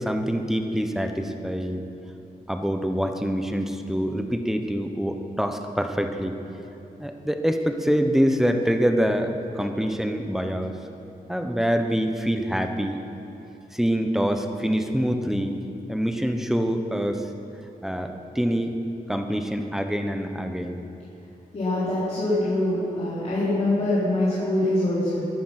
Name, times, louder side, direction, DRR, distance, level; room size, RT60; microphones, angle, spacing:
voice 1, 0.0-1.8 2.5-6.4 7.0-10.7 11.3-13.0 13.7-15.6 15.9-17.3 17.8-18.7 19.1-20.8, equal, 5° right, 5 dB, 1.0 m, -25 dB
voice 2, 21.5-25.2, left 1 dB, 45° left, -11 dB, 4.0 m, -24 dB
22.5 x 10.5 x 6.0 m, 2.8 s
wide cardioid pair, 140°, 15 cm